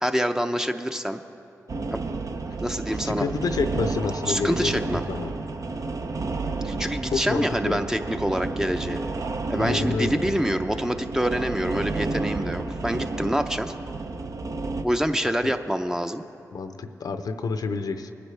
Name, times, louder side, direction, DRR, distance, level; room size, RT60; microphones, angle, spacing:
voice 1, 0.0-1.2 1.9-2.1 2.6-3.3 4.3-5.0 6.6-9.0 9.5-13.7 14.8-16.2, equal, 10° right, 7 dB, 0.6 m, -26 dB
sound 1, 1.7-14.8, right 3 dB, 55° right, 0.6 m, -31 dB
voice 2, 3.0-5.3 7.1-7.8 9.6-10.2 16.5-18.1, left 4 dB, 75° left, 8 dB, 0.6 m, -28 dB
20.0 x 10.0 x 3.3 m, 2.7 s
cardioid pair, 50°, 7 cm